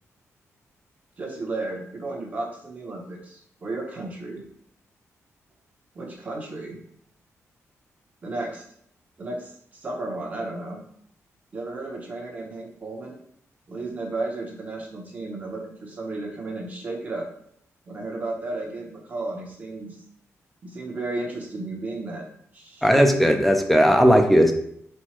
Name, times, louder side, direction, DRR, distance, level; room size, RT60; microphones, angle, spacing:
voice 1, 1.2-4.4 5.9-6.8 8.2-8.6 9.2-10.8 11.5-13.2 13.7-17.3 17.9-20.0 20.6-22.3 22.5-23.1, right 2 dB, 30° right, -1 dB, 0.9 m, -33 dB
voice 2, 22.8-24.6, equal, ahead, 5 dB, 0.4 m, -17 dB
4.4 x 2.2 x 4.3 m, 0.69 s
wide cardioid pair, 175°, 5 cm